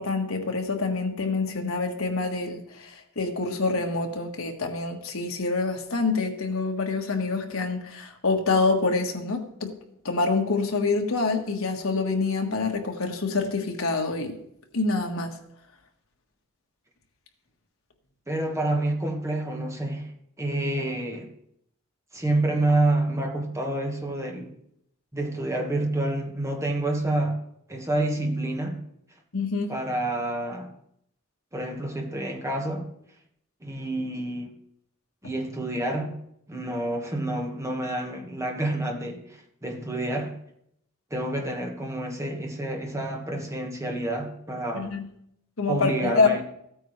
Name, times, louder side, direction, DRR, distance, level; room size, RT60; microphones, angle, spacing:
voice 1, 0.0-9.7 10.0-14.4 14.7-15.4 29.3-29.8 44.7-45.0 45.6-46.3, left 3 dB, 75° left, 1.5 m, -26 dB
voice 2, 18.3-20.1 20.4-21.3 22.1-24.5 25.1-27.4 27.7-28.8 29.7-30.7 31.5-32.9 33.6-34.5 35.2-36.2 36.5-40.4 41.1-44.9 45.7-46.4, right 1 dB, 15° right, 1.5 m, -28 dB
15.0 x 8.8 x 3.3 m
head